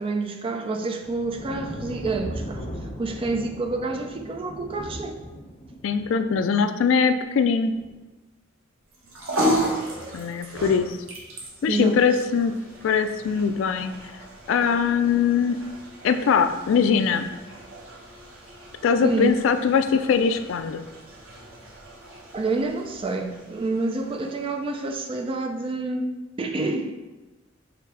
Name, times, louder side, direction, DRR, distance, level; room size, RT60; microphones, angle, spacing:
voice 1, 0.0-2.6 3.0-5.2 11.6-12.0 19.0-19.4 22.3-26.1 26.4-26.9, right 3 dB, 25° right, 5 dB, 0.3 m, -28 dB
sound 1, 1.0-6.5 7.7-8.0, equal, 25° left, 0.8 m, -37 dB
voice 2, 5.8-7.8 10.1-11.0 11.6-12.5 12.8-14.0 14.5-15.6 16.0-17.3 18.8-20.9, left 6 dB, 70° left, 9 dB, 0.3 m, -21 dB
sound 2, 8.9-25.4, equal, 90° right, 1.1 m, -35 dB
5.0 x 3.3 x 3.2 m, 1.1 s
head